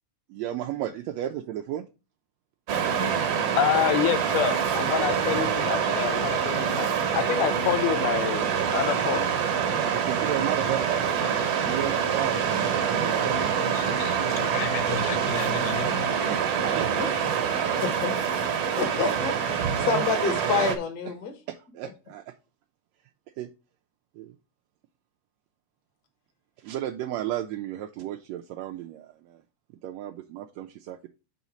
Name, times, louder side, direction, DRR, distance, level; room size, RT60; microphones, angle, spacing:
voice 1, 0.3-1.9 5.4-5.5 9.6-14.4 16.3-17.1 21.5-22.3 23.4-23.5 24.2-24.3 26.6-29.4 29.8-31.1, right 12 dB, 85° right, 1.5 m, -34 dB
Waves surf, 2.7-20.8, right 7 dB, 60° right, 1.8 m, -26 dB
voice 2, 3.5-8.5 8.7-9.3 13.7-16.1, left 12 dB, 90° left, 2.2 m, -28 dB
voice 3, 17.8-18.1 18.8-21.3, left 5 dB, 50° left, 1.2 m, -28 dB
5.7 x 4.0 x 6.0 m
omnidirectional pair, 3.6 m